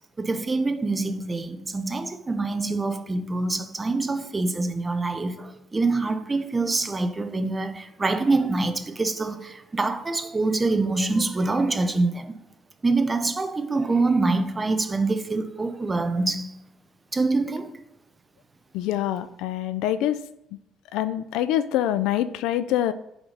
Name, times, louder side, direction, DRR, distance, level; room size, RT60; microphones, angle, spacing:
voice 1, 0.0-12.3 12.8-16.6 17.1-17.8, right 3 dB, 15° right, 0.5 m, -25 dB
voice 2, 18.7-20.2 20.9-22.9, left 12 dB, 85° left, 0.4 m, -25 dB
5.8 x 3.8 x 5.4 m
cardioid pair, 145°, 0 cm